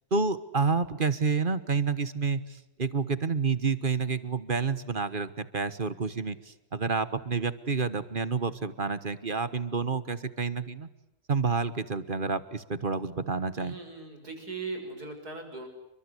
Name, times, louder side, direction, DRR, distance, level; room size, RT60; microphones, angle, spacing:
voice 1, 0.1-10.9 11.3-13.7, right 4 dB, 35° right, 14 dB, 1.4 m, -29 dB
voice 2, 13.6-15.7, right 3 dB, 90° right, 5 dB, 7.3 m, -39 dB
29.5 x 23.5 x 8.4 m, 0.88 s
omnidirectional pair, 1.6 m